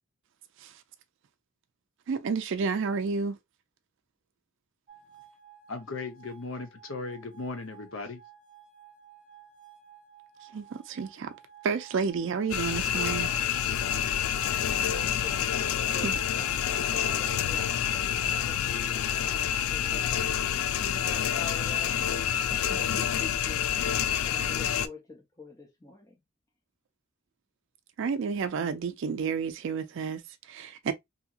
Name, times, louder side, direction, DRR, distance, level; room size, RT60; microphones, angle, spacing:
voice 1, 2.1-3.4 10.4-11.3 11.6-13.3 16.0-16.2 28.0-30.9, right 5 dB, 60° right, 0.4 m, -31 dB
sound 1, 4.9-20.0, right 9 dB, 40° right, 0.8 m, -54 dB
voice 2, 5.7-8.2, left 3 dB, 70° left, 0.7 m, -37 dB
sound 2, 12.5-24.9, left 9 dB, 90° left, 0.3 m, -28 dB
voice 3, 14.8-20.4 20.7-23.9 24.2-26.2, left 1 dB, 15° left, 0.5 m, -46 dB
2.7 x 2.7 x 2.3 m
head